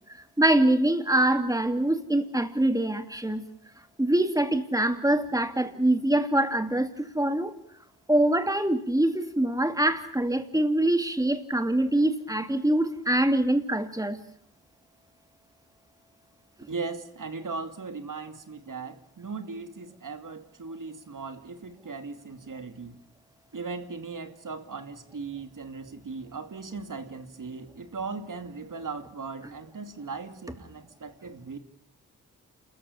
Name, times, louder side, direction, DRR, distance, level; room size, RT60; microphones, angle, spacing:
voice 1, 0.4-3.4 4.0-7.5 8.1-14.2 16.6-16.7, right 1 dB, 10° right, 8 dB, 2.6 m, -24 dB
voice 2, 16.7-23.0 23.5-31.6, right 4 dB, 55° right, 8 dB, 2.5 m, -38 dB
28.5 x 14.0 x 8.6 m, 0.70 s
cardioid pair, 50°, 37 cm